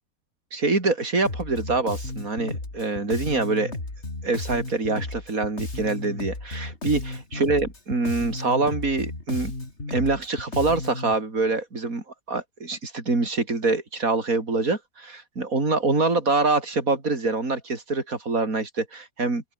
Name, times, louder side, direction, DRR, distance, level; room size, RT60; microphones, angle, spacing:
voice 1, 0.5-3.7 4.2-9.5 9.9-19.4, right 3 dB, 65° right, 4.7 m, -25 dB
Bass guitar, 1.2-11.1, left 2 dB, 45° left, 4.8 m, -34 dB
open air
omnidirectional pair, 1.6 m